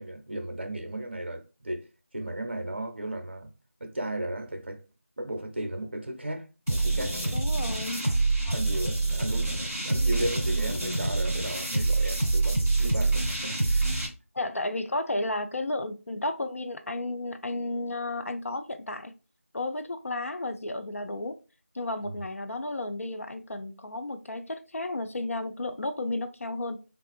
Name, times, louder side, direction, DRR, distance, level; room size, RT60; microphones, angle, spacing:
voice 1, 0.0-1.9 2.1-3.5 3.8-4.8 5.2-7.3 8.0-8.2 8.5-13.9 22.0-22.2, right 1 dB, 45° right, 0.6 m, -35 dB
sound 1, 6.7-14.1, right 2 dB, 10° left, 0.7 m, -26 dB
voice 2, 7.3-8.1 14.3-19.2 19.5-21.4 21.7-26.8, left 2 dB, 70° left, 0.5 m, -33 dB
3.6 x 2.4 x 2.4 m
figure-of-eight pair, 180°, 8 cm